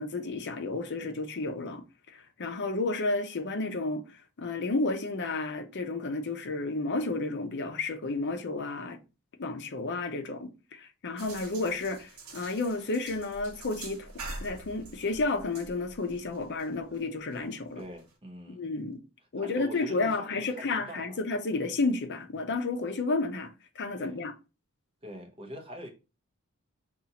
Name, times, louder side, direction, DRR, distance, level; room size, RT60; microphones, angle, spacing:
voice 1, 0.0-1.8 2.1-4.0 4.4-9.0 9.4-14.1 14.4-17.8 18.5-19.0 19.3-23.5 23.8-24.3, left 3 dB, 55° left, 0.6 m, -31 dB
sound 1, 11.2-18.1, right 2 dB, 90° right, 1.2 m, -46 dB
voice 2, 17.8-18.7 19.4-21.2 24.0-24.2 25.0-25.9, equal, 25° right, 0.8 m, -44 dB
5.4 x 2.4 x 2.8 m
head